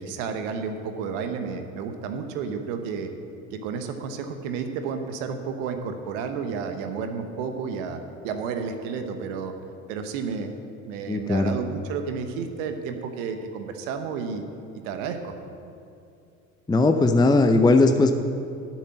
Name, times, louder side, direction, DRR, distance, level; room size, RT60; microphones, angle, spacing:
voice 1, 0.0-3.1 3.5-9.5 9.9-10.5 10.8-14.4 14.8-15.3, right 5 dB, 70° right, 6 dB, 1.1 m, -31 dB
voice 2, 11.1-11.5 16.7-18.1, left 2 dB, 10° left, 7 dB, 0.7 m, -18 dB
11.5 x 7.2 x 7.5 m, 2.5 s
hypercardioid pair, 60°, 40 cm